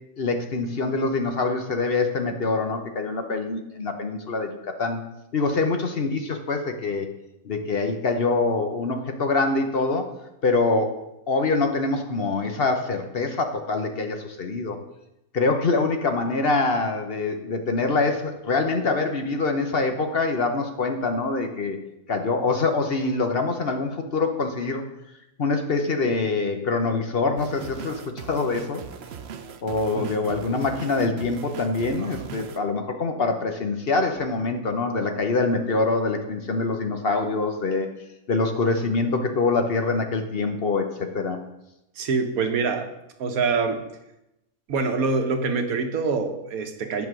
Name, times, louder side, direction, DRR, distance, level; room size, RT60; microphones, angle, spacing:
voice 1, 0.2-5.0 5.3-7.1 7.4-10.1 10.4-10.9 11.3-14.8 15.3-21.8 22.1-24.8 25.4-28.0 28.3-28.8 29.6-37.9 38.3-41.4, left 3 dB, 50° left, 5 dB, 1.0 m, -24 dB
sound 1, 27.4-32.6, right 7 dB, 60° right, 0.8 m, -40 dB
voice 2, 42.0-42.9 43.2-43.8 44.7-47.1, right 4 dB, 90° right, 6 dB, 1.4 m, -25 dB
9.3 x 5.4 x 6.2 m, 0.89 s
omnidirectional pair, 1.5 m